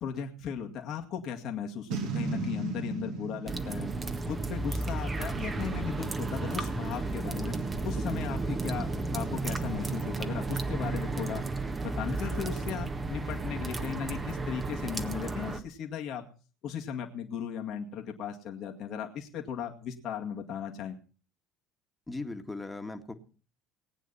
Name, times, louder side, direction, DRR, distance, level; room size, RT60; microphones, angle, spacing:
voice 1, 0.0-3.9 4.2-7.6 7.8-8.9 9.1-11.4 11.8-16.2 16.6-21.0, left 8 dB, 55° left, 2 dB, 2.1 m, -37 dB
Boom, 1.9-5.2, right 5 dB, 65° right, 3.3 m, -36 dB
sound 1, 3.5-15.6, right 3 dB, 25° right, 1.7 m, -33 dB
voice 2, 22.1-23.1, left 2 dB, 15° left, 6 dB, 2.0 m, -38 dB
19.0 x 9.2 x 5.7 m, 0.38 s
hypercardioid pair, 65°, 0 cm